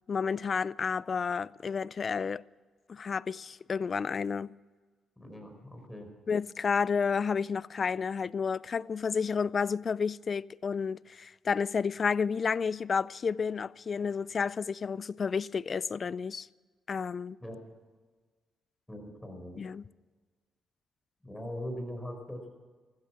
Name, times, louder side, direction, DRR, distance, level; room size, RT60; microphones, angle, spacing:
voice 1, 0.1-2.4 2.9-4.5 6.3-16.5 16.9-17.4 19.6-19.8, left 5 dB, 40° left, 0.4 m, -31 dB
voice 2, 5.2-6.1 6.4-6.5 17.4-17.6 18.9-19.6 21.2-22.5, equal, 5° left, 5.2 m, -41 dB
15.5 x 14.0 x 5.9 m
cardioid pair, 90°, 0 cm